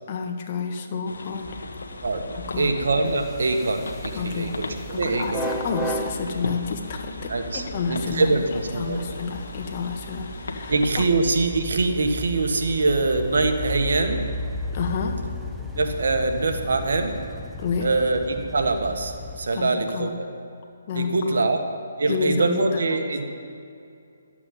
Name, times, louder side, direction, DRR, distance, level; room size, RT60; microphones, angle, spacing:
voice 1, 0.1-1.6 2.3-2.7 4.1-4.5 4.9-8.3 8.7-11.0 14.7-15.2 17.6-17.9 19.5-20.1 20.9-21.4 22.1-23.0, left 5 dB, 40° left, 3 dB, 1.6 m, -30 dB
sound 1, 1.1-11.0, left 3 dB, 80° left, 1.3 m, -38 dB
sound 2, 1.4-19.5, equal, ahead, 0.8 m, -35 dB
voice 2, 2.0-5.5 7.3-7.6 7.9-9.1 10.7-14.2 15.8-17.2 17.8-20.3 20.9-21.6 22.0-23.2, right 3 dB, 70° right, 5 dB, 1.4 m, -24 dB
12.5 x 8.1 x 9.4 m, 2.5 s
hypercardioid pair, 155°, 0 cm